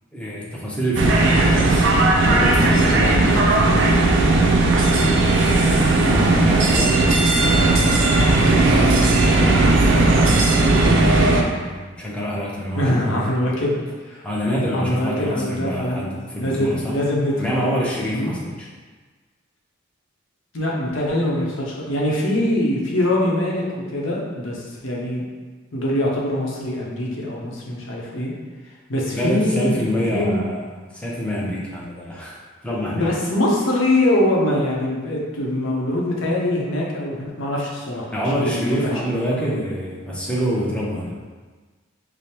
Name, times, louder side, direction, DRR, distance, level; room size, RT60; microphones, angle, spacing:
voice 1, 0.1-4.5 5.4-7.0 7.4-9.0 9.3-10.8 11.6-13.3 14.2-17.0 17.4-18.7 29.1-30.6 30.9-32.4 32.6-33.1 38.1-41.1, equal, 5° left, -6 dB, 0.6 m, -26 dB
sound 1, 1.0-11.4, right 2 dB, 65° right, 0.4 m, -16 dB
voice 2, 12.7-13.8 14.0-14.2 14.7-16.0 16.4-17.3 18.1-18.3 20.5-25.3 25.7-28.3 28.9-29.8 30.1-30.4 32.7-38.9 39.5-39.6, left 1 dB, 75° left, -3 dB, 0.8 m, -23 dB
5.0 x 2.0 x 2.8 m, 1.4 s
head